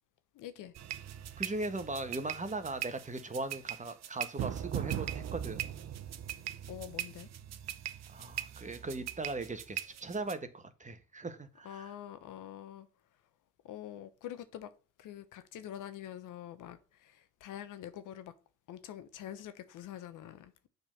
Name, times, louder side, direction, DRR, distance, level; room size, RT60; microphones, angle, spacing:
voice 1, 0.3-0.7 6.7-7.3 11.6-12.9 13.6-14.7 15.0-18.3 18.7-20.7, left 11 dB, 65° left, 1.0 m, -45 dB
sound 1, 0.8-10.3, right 11 dB, 50° right, 0.9 m, -40 dB
voice 2, 1.4-5.7 8.1-11.9, right 2 dB, 20° right, 1.3 m, -39 dB
6.9 x 4.0 x 6.3 m
supercardioid pair, 65°, 34 cm